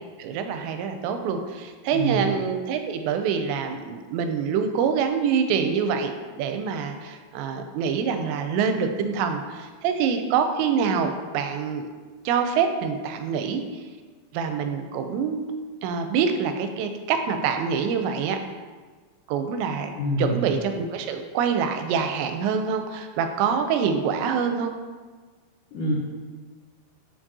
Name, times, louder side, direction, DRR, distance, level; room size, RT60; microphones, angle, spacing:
voice 1, 0.2-11.9 12.3-13.6 14.3-15.4 15.8-18.4 19.3-19.9 20.2-24.7, right 6 dB, 85° right, 6 dB, 2.7 m, -25 dB
voice 2, 19.9-20.4 25.7-26.0, left 1 dB, 80° left, -6 dB, 1.9 m, -26 dB
7.8 x 6.0 x 2.7 m, 1.4 s
omnidirectional pair, 5.1 m